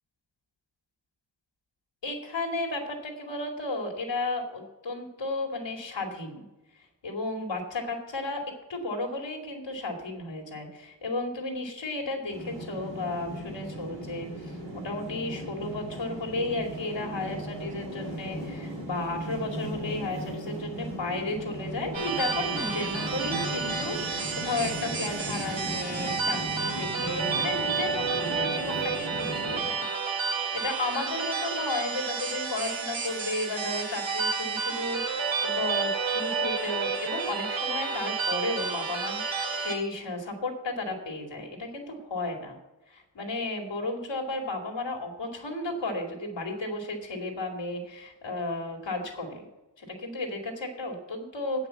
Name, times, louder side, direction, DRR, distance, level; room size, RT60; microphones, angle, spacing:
voice 1, 2.0-6.4 7.0-8.4 8.7-29.9 30.3-42.6 42.9-49.4 49.8-51.7, left 2 dB, 65° left, 3 dB, 2.5 m, -33 dB
sound 1, 12.3-29.6, right 1 dB, 55° right, 4.2 m, -37 dB
sound 2, 21.9-39.8, right 5 dB, 70° right, 2.4 m, -30 dB
9.2 x 5.9 x 8.2 m, 1.0 s
wide cardioid pair, 115°, 46 cm